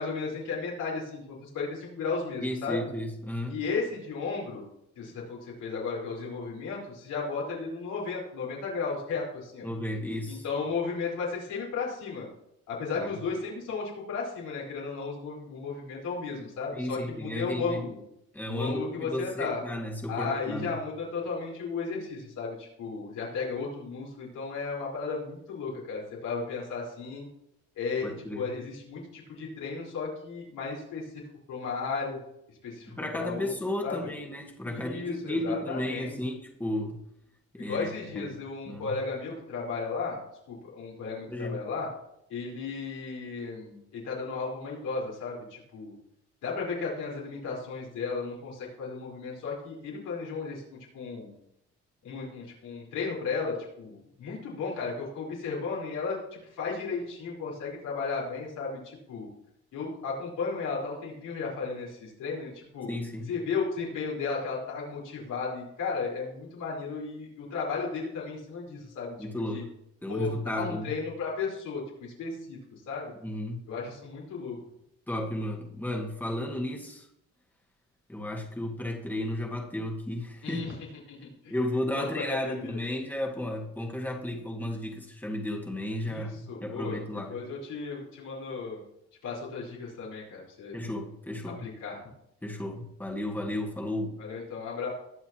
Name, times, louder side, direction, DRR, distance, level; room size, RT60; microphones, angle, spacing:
voice 1, 0.0-2.9 3.5-4.7 5.0-9.7 10.3-12.3 12.7-18.0 18.5-19.6 20.1-27.3 27.8-31.1 31.5-32.2 32.6-33.5 33.8-34.1 34.6-36.1 37.6-40.2 40.5-41.9 42.3-45.9 46.4-50.6 50.9-51.3 52.0-59.3 59.7-62.9 63.3-69.1 69.5-69.6 70.1-72.6 72.9-73.1 73.7-74.6 80.4-80.7 81.1-81.5 81.9-82.8 86.0-88.8 89.2-90.8 91.6-92.0 94.2-94.9, left 4 dB, 85° left, -4 dB, 4.6 m, -34 dB
voice 2, 2.4-3.6 9.6-10.4 12.9-13.1 16.7-17.8 18.3-20.7 28.0-28.5 33.0-37.0 37.5-38.3 38.7-39.0 41.3-41.6 62.9-63.3 69.2-69.7 70.0-70.9 73.2-73.6 75.1-77.1 78.1-80.7 81.5-87.4 90.7-91.7 92.4-94.2, left 1 dB, 5° left, 0 dB, 1.9 m, -33 dB
20.5 x 6.9 x 3.0 m, 0.77 s
cardioid pair, 90°, 30 cm